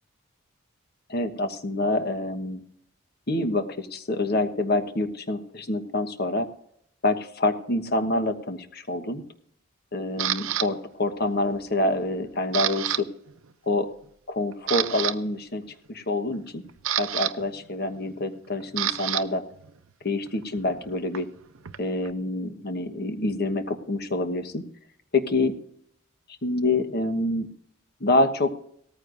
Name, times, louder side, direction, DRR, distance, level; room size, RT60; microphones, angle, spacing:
voice 1, 1.1-2.6 3.3-6.5 7.0-9.2 9.9-13.1 13.7-13.9 14.3-15.6 15.9-16.6 17.0-19.4 20.0-21.3 21.8-24.6 25.1-25.5 26.4-27.5 28.0-28.5, left 2 dB, 50° left, 8 dB, 1.2 m, -26 dB
Camera, 10.2-10.7 11.3-11.6 11.9-13.0 13.3-13.5 14.0-14.1 14.5-15.1 16.3-19.2 19.5-22.1, right 11 dB, 70° right, 0.6 m, -30 dB
18.0 x 14.5 x 2.6 m, 0.69 s
head